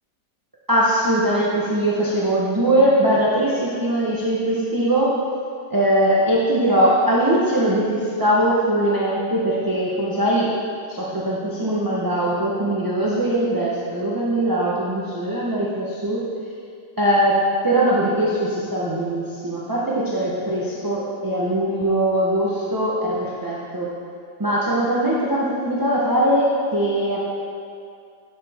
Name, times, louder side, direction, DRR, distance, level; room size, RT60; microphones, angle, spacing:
voice 1, 0.7-5.2 5.7-10.5 10.9-16.2 17.0-23.9 24.4-27.2, right 1 dB, 20° right, -7 dB, 0.6 m, -21 dB
10.5 x 6.7 x 3.6 m, 2.4 s
omnidirectional pair, 1.9 m